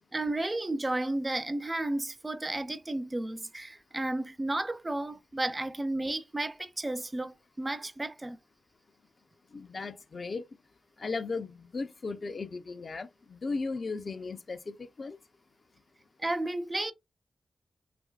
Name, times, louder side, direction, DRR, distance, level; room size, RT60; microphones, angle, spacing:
voice 1, 0.1-8.4 16.2-16.9, right 2 dB, 25° right, 0.4 m, -33 dB
voice 2, 9.5-10.5 11.0-15.2, left 4 dB, 55° left, 0.4 m, -36 dB
3.4 x 2.7 x 2.3 m
cardioid pair, 60°, 0 cm